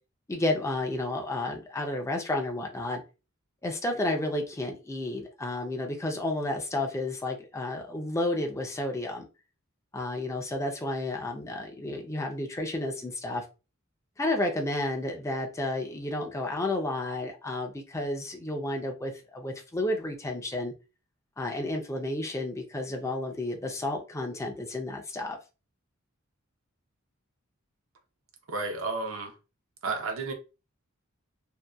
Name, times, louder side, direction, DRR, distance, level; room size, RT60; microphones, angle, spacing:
voice 1, 0.3-3.0 3.6-9.2 9.9-13.4 14.2-20.7 21.4-25.4, left 1 dB, 15° left, 0.5 m, -31 dB
voice 2, 28.5-29.3 29.8-30.3, right 3 dB, 70° right, 0.7 m, -32 dB
2.7 x 2.2 x 2.2 m
head